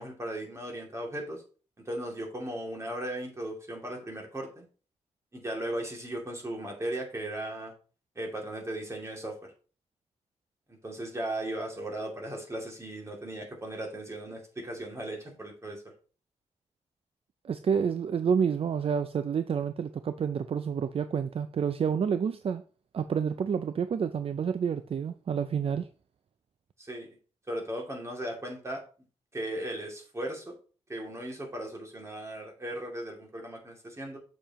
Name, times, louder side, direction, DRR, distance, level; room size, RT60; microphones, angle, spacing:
voice 1, 0.0-1.4 1.8-4.7 5.3-7.7 8.2-9.4 10.7-15.8 26.8-27.1 27.5-28.8 29.3-30.5 30.9-34.2, right 1 dB, 25° right, 2.6 m, -37 dB
voice 2, 17.4-22.6 22.9-25.9, right 7 dB, 50° right, 0.4 m, -29 dB
7.3 x 6.7 x 3.0 m
wide cardioid pair, 110°, 12 cm